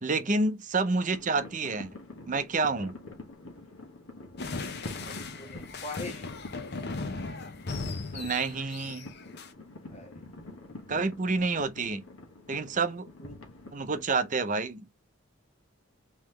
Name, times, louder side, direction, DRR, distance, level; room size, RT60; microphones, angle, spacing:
voice 1, 0.0-1.9 2.3-2.9 8.1-9.1 10.9-12.0 12.5-13.1 13.7-14.8, right 3 dB, 35° right, 0.6 m, -28 dB
sound 1, 1.1-14.1, left 2 dB, 70° left, 1.2 m, -46 dB
sound 2, 4.4-9.5, left 3 dB, 50° left, 0.7 m, -37 dB
voice 2, 4.8-6.3 9.9-10.2 13.2-13.4, left 3 dB, 30° left, 1.2 m, -43 dB
3.9 x 3.1 x 3.1 m
head